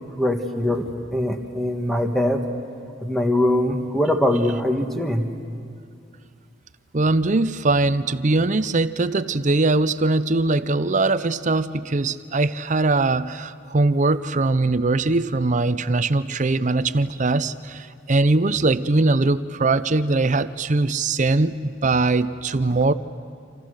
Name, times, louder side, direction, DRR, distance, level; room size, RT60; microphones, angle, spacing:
voice 1, 0.2-2.4 3.0-5.3, left 1 dB, ahead, 4 dB, 1.6 m, -22 dB
voice 2, 6.9-22.9, right 3 dB, 40° right, 14 dB, 0.7 m, -21 dB
28.5 x 27.0 x 6.5 m, 2.3 s
head